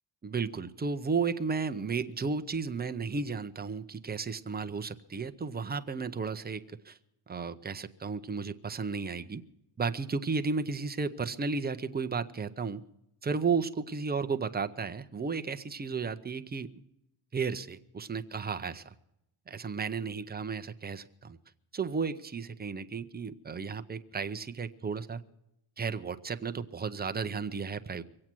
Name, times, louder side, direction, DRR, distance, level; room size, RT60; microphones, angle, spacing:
voice 1, 0.2-7.0 7.3-9.4 9.8-12.8 13.2-16.8 17.3-18.9 19.5-21.4 21.7-25.2 25.8-28.0, right 5 dB, 20° right, 8 dB, 0.6 m, -33 dB
23.5 x 8.7 x 6.1 m, 0.86 s
cardioid pair, 140°, 50 cm